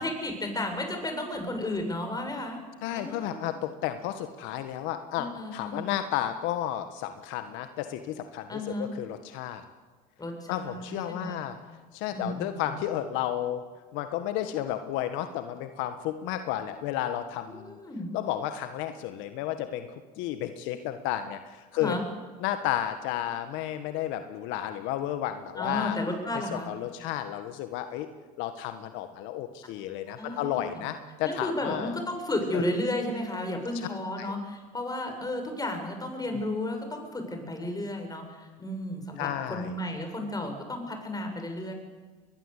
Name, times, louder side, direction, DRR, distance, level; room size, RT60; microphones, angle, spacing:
voice 1, 0.0-2.6 2.9-3.6 5.1-5.8 8.5-8.9 10.2-11.4 12.1-12.8 17.5-18.1 21.7-22.0 25.6-26.7 30.2-30.9 31.2-41.7, left 1 dB, 20° left, 5 dB, 6.8 m, -33 dB
voice 2, 2.8-9.6 10.5-11.6 11.9-13.6 13.9-17.8 18.1-22.0 22.4-26.0 26.3-28.1 28.4-32.0 32.5-32.6 34.2-34.3 36.3-36.4 39.2-39.8, left 12 dB, 70° left, 9 dB, 1.6 m, -32 dB
22.5 x 21.0 x 8.4 m, 1.4 s
supercardioid pair, 85°, 20 cm